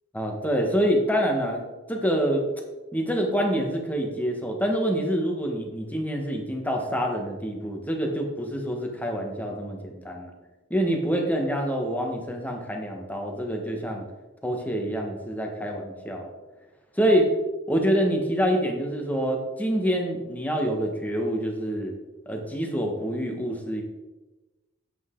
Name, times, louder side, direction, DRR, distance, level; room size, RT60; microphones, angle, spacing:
voice 1, 0.1-1.6 1.9-2.4 2.9-10.3 10.7-14.1 14.4-16.3 17.0-17.3 17.7-21.9 22.3-23.8, equal, 10° left, 1 dB, 1.4 m, -26 dB
9.1 x 7.9 x 3.8 m, 1.1 s
head